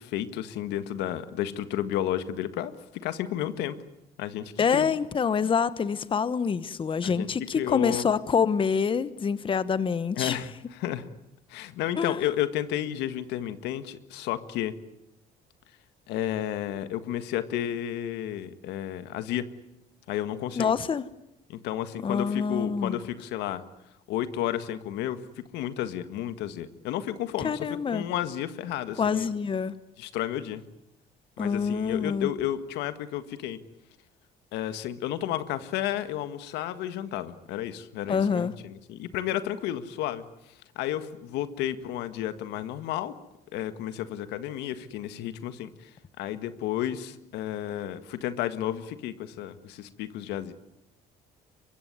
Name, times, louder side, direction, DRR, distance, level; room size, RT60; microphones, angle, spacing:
voice 1, 0.0-2.7 3.0-3.8 4.2-4.9 7.0-7.3 7.6-8.1 10.2-11.1 11.5-14.7 16.1-19.5 20.1-20.7 21.5-23.6 24.1-25.2 25.5-29.3 30.0-30.6 31.4-33.6 34.5-40.2 40.8-43.1 43.5-45.9 46.2-50.5, left 12 dB, 90° left, 11 dB, 1.7 m, -32 dB
voice 2, 4.6-10.4 12.0-12.2 20.6-21.0 22.0-23.0 27.4-28.0 29.0-29.7 31.4-32.3 38.1-38.6, left 6 dB, 30° left, 15 dB, 1.0 m, -26 dB
23.5 x 22.5 x 9.5 m, 0.84 s
cardioid pair, 110°, 17 cm